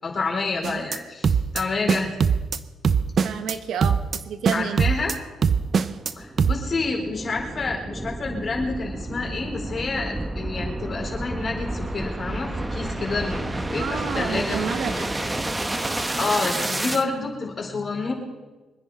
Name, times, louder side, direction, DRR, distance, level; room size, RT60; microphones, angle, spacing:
voice 1, 0.0-2.1 4.5-5.1 6.1-15.0 15.7-15.9 16.2-18.1, left 3 dB, 40° left, -1 dB, 4.7 m, -29 dB
sound 1, 0.6-1.0 1.2-1.6 1.9-2.6 2.8-3.5 3.8-4.2 4.5-5.2 5.4-6.1 6.4-6.6, right 6 dB, 50° right, 0.8 m, -21 dB
voice 2, 3.2-4.8 13.7-15.1, right 7 dB, 75° right, 9 dB, 1.1 m, -30 dB
sound 2, 5.5-17.0, right 2 dB, 15° right, 1.1 m, -30 dB
25.0 x 10.0 x 5.0 m, 1.2 s
cardioid pair, 90°, 0 cm